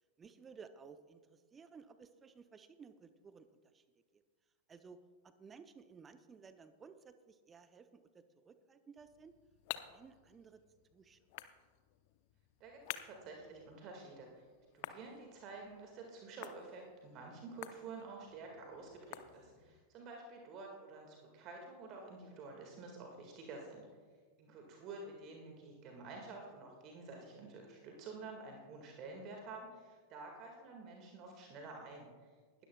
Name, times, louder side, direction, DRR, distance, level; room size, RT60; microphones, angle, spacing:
voice 1, 0.2-3.9 4.1-4.2 4.7-9.4 9.9-10.6 10.9-11.2 25.0-25.2, right 5 dB, 20° right, 11 dB, 0.6 m, -57 dB
sound 1, 9.0-19.8, left 14 dB, 50° left, 0.7 m, -52 dB
voice 2, 12.6-14.3 14.7-23.9 24.4-32.1, right 3 dB, 35° right, 2 dB, 1.8 m, -50 dB
19.5 x 13.0 x 2.3 m, 1.5 s
figure-of-eight pair, 90°, 0 cm